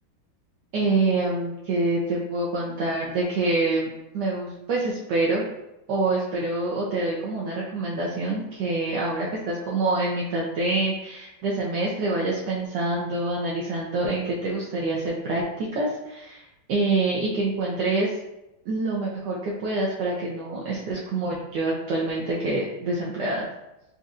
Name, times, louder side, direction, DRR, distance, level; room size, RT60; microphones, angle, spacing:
voice 1, 0.7-3.9 4.1-5.5 5.9-16.4 16.7-18.1 18.7-23.5, right 2 dB, 70° right, -5 dB, 1.2 m, -26 dB
6.5 x 2.6 x 2.4 m, 0.93 s
omnidirectional pair, 2.1 m